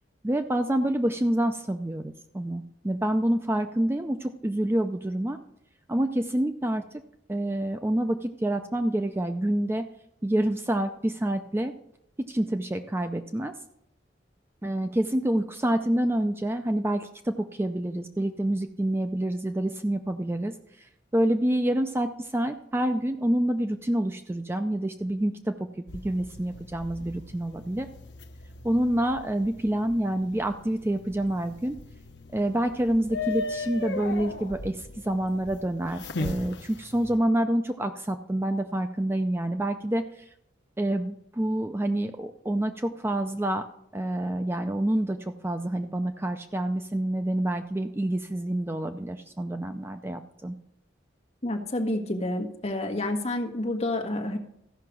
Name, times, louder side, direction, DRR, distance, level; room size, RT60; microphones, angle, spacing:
voice 1, 0.2-5.4 5.9-6.9 7.3-9.9 10.2-11.7 12.3-13.5 14.6-25.5 25.9-27.9 28.6-31.8 32.3-40.3 40.8-43.7 43.9-50.6, right 1 dB, 15° right, 7 dB, 0.4 m, -27 dB
sound 1, 25.9-37.2, left 3 dB, 60° left, 0.8 m, -38 dB
voice 2, 51.4-54.4, left 1 dB, 35° left, 3 dB, 1.4 m, -29 dB
14.5 x 5.8 x 6.1 m, 0.76 s
head